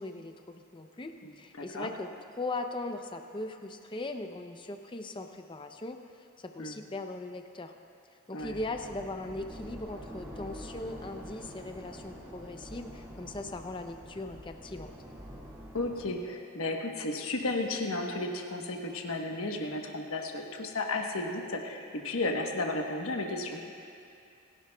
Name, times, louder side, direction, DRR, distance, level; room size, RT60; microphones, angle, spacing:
voice 1, 0.0-7.7 8.3-14.9, left 2 dB, 20° left, 6 dB, 0.5 m, -39 dB
voice 2, 1.6-1.9 6.6-6.8 8.3-8.5 15.7-23.6, left 2 dB, 75° left, 2 dB, 1.1 m, -33 dB
sound 1, 8.4-16.1, equal, 10° right, 1.9 m, -46 dB
29.0 x 11.0 x 2.3 m, 2.5 s
head